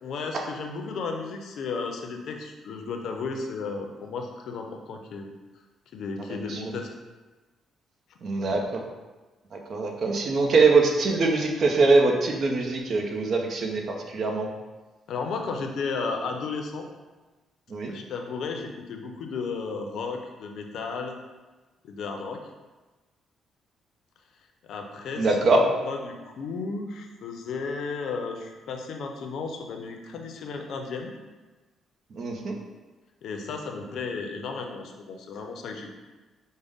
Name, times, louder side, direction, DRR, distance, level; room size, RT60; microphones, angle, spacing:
voice 1, 0.0-5.3 5.9-6.9 15.1-16.9 17.9-21.1 21.8-22.4 24.6-31.1 33.2-36.0, left 4 dB, 70° left, 3 dB, 0.5 m, -34 dB
voice 2, 8.2-8.8 9.5-13.8 14.1-14.5 17.7-17.9 25.2-25.6 32.2-32.6, right 3 dB, 55° right, 2 dB, 0.6 m, -22 dB
5.1 x 2.1 x 3.5 m, 1.2 s
cardioid pair, 90°, 0 cm